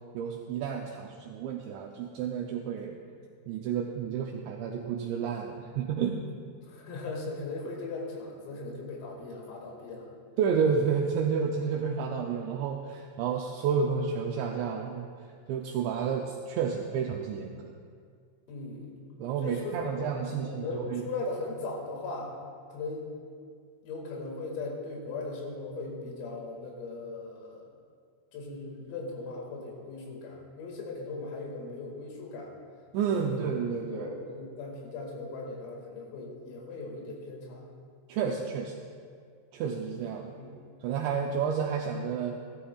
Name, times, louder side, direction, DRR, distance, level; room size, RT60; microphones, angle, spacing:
voice 1, 0.1-3.0 3.5-6.2 10.4-15.1 15.5-17.7 19.2-21.1 32.9-34.1 38.1-38.8 39.5-40.3 40.8-42.4, right 6 dB, 90° right, 1 dB, 2.5 m, -30 dB
voice 2, 6.7-10.1 18.5-18.9 19.4-22.3 22.7-23.1 23.8-27.7 28.3-32.5 33.0-33.4 33.9-37.7 40.4-40.6, left 3 dB, 85° left, -1 dB, 4.7 m, -38 dB
17.0 x 13.0 x 2.3 m, 2.1 s
omnidirectional pair, 5.9 m